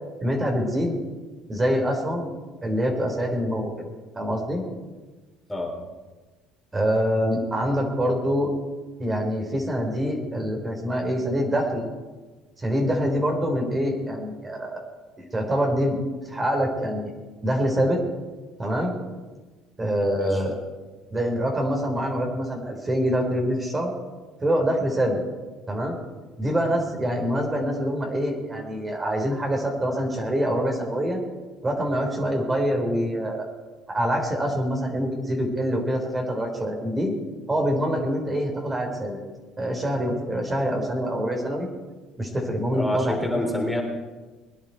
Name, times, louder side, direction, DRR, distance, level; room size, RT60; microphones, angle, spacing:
voice 1, 0.2-1.0 1.5-2.3 2.6-3.8 4.2-4.6 6.7-8.5 9.0-11.9 12.6-14.8 15.3-16.0 16.3-17.1 17.4-18.0 18.6-18.9 19.8-20.6 21.1-23.9 24.4-25.2 25.7-26.0 26.4-31.2 31.6-33.5 33.9-37.1 37.5-39.2 39.6-41.7 42.2-43.2, equal, 25° right, 1 dB, 3.7 m, -25 dB
voice 2, 42.7-43.8, left 1 dB, 5° left, 0 dB, 3.6 m, -27 dB
22.5 x 9.8 x 4.6 m, 1.3 s
hypercardioid pair, 70°, 0 cm